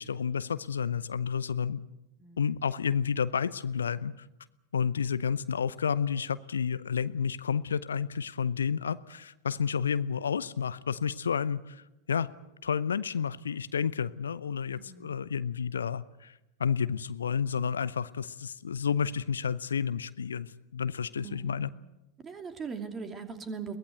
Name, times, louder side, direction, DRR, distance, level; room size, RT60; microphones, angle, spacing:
voice 1, 0.0-1.8 2.4-4.3 4.7-12.3 12.6-16.3 16.6-21.7, left 7 dB, 70° left, 16 dB, 0.7 m, -30 dB
voice 2, 2.2-2.6 14.7-15.3 21.2-21.8 22.2-23.8, right 5 dB, 20° right, 6 dB, 2.8 m, -41 dB
23.0 x 19.0 x 8.1 m, 0.96 s
figure-of-eight pair, 90°, 0 cm